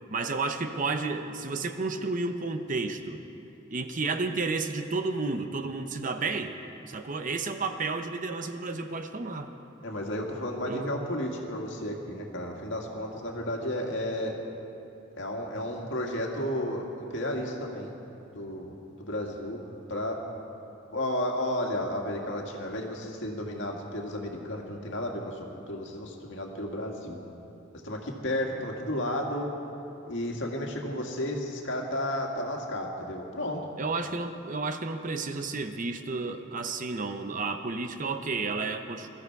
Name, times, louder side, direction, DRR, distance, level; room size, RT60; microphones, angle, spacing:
voice 1, 0.1-3.2 3.7-6.6 6.9-9.5 10.6-10.9 33.8-39.1, right 3 dB, 40° right, 7 dB, 0.7 m, -31 dB
voice 2, 9.8-14.4 15.2-18.0 18.3-19.6 19.9-20.2 20.9-25.4 25.7-27.2 27.8-29.5 30.1-33.6, left 1 dB, 65° left, 0 dB, 2.0 m, -32 dB
22.0 x 14.0 x 4.7 m, 2.8 s
head